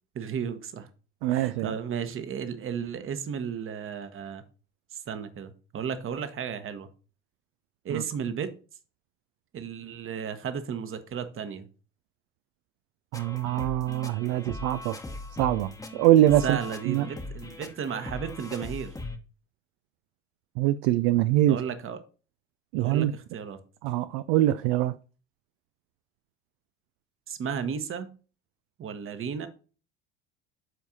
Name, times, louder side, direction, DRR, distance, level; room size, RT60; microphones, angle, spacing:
voice 1, 0.1-0.9 1.3-4.4 4.9-6.9 7.8-8.5 9.5-11.7 16.4-18.9 21.5-22.0 22.8-23.6 27.3-28.1 28.8-29.5, right 7 dB, 35° right, 1.2 m, -34 dB
voice 2, 1.2-1.7 7.9-8.0 13.1-14.9 15.4-16.6 16.9-17.1 20.6-21.6 22.7-23.1 23.8-24.9, right 14 dB, 55° right, 0.5 m, -23 dB
sound 1, 13.1-19.2, left 2 dB, 10° left, 1.1 m, -40 dB
12.5 x 4.6 x 2.8 m
figure-of-eight pair, 65°, 36 cm